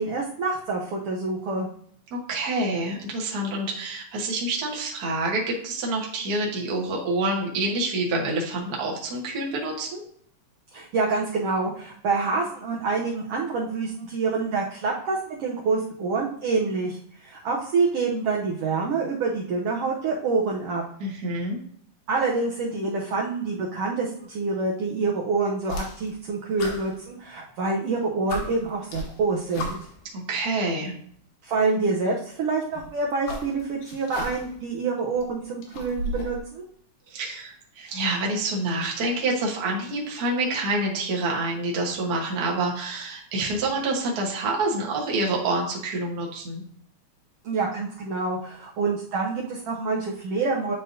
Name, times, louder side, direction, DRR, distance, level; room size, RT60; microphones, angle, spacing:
voice 1, 0.0-1.7 10.7-20.8 22.1-29.8 31.4-36.6 47.4-50.7, right 4 dB, 70° right, -2 dB, 1.5 m, -27 dB
voice 2, 2.1-10.0 21.0-21.6 30.3-30.9 37.1-46.6, right 2 dB, 50° right, -2 dB, 1.2 m, -27 dB
sound 1, 25.6-26.2 26.6-27.6 28.0-28.1 28.3-30.1 31.1-31.2 32.6-34.6 35.0-36.4, left 2 dB, 85° left, 2.6 m, -35 dB
9.7 x 3.8 x 2.6 m, 0.62 s
omnidirectional pair, 3.4 m